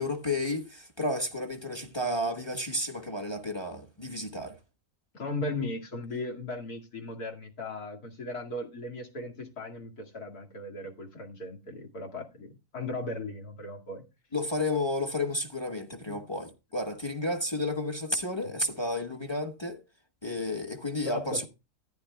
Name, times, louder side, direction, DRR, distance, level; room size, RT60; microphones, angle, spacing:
voice 1, 0.0-4.5 14.3-19.8 20.2-21.5, left 1 dB, 20° left, 1.2 m, -32 dB
voice 2, 5.1-14.0 16.0-16.2 21.0-21.5, left 2 dB, 80° left, 2.7 m, -37 dB
14.5 x 10.5 x 2.3 m
omnidirectional pair, 1.6 m